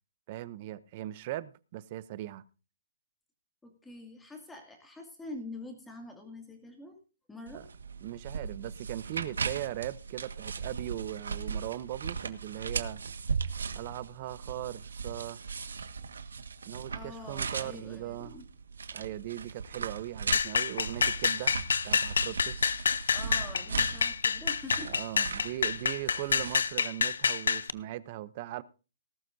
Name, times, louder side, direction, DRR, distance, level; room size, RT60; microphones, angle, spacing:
voice 1, 0.3-2.4 7.5-7.6 8.0-13.0 13.7-15.4 16.7-18.4 18.9-21.5 21.8-22.6 24.8-28.6, right 14 dB, 30° right, 0.6 m, -39 dB
voice 2, 3.6-7.0 7.3-7.7 16.9-18.4 23.1-24.9 26.3-26.5, left 2 dB, 5° left, 2.2 m, -45 dB
sound 1, 7.5-26.7, right 5 dB, 85° right, 1.5 m, -38 dB
sound 2, 20.3-27.7, left 6 dB, 70° left, 0.6 m, -28 dB
19.0 x 12.0 x 2.6 m
hypercardioid pair, 170°, 0 cm